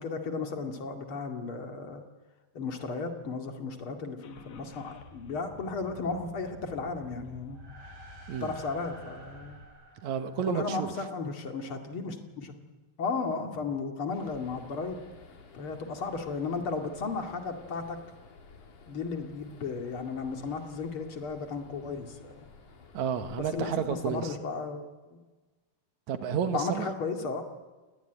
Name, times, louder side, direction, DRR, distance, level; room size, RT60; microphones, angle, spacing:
voice 1, 0.0-2.0 2.5-7.6 8.4-9.6 10.5-12.5 13.0-15.0 15.5-18.0 18.9-22.4 23.4-24.9 25.1-25.2 26.5-27.4, left 4 dB, 40° left, 4 dB, 2.7 m, -34 dB
Car / Engine starting, 4.2-9.6, left 3 dB, 80° left, 3.8 m, -51 dB
sound 1, 7.4-11.1, right 2 dB, 45° right, 6.0 m, -53 dB
voice 2, 10.0-10.9 22.9-24.4 26.1-26.9, right 7 dB, 65° right, 9 dB, 2.5 m, -31 dB
sound 2, 14.1-24.2, left 4 dB, 60° left, 4.2 m, -53 dB
29.5 x 19.5 x 9.2 m, 1.3 s
omnidirectional pair, 4.0 m